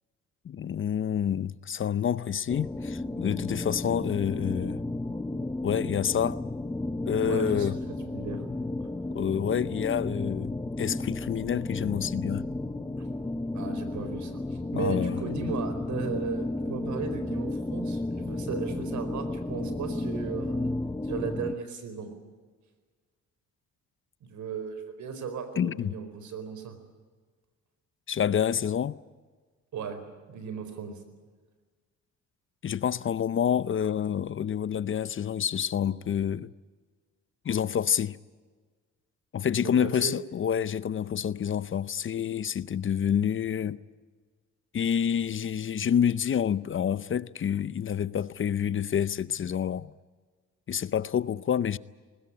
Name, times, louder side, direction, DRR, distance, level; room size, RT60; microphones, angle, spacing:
voice 1, 0.4-4.8 5.6-6.4 7.1-7.8 9.1-10.5 10.8-12.5 14.8-15.2 25.6-25.9 28.1-29.0 32.6-36.5 37.4-38.2 39.3-43.8 44.7-49.9 50.7-51.8, left 8 dB, 40° left, 0.7 m, -28 dB
sound 1, 2.5-21.5, left 2 dB, 10° left, 0.8 m, -33 dB
voice 2, 7.1-8.4 13.0-13.1 13.5-20.7 21.0-22.1 24.2-26.8 29.7-30.0 30.3-31.0 39.6-40.1, right 6 dB, 70° right, 4.5 m, -36 dB
21.0 x 19.5 x 9.9 m
cardioid pair, 90°, 30 cm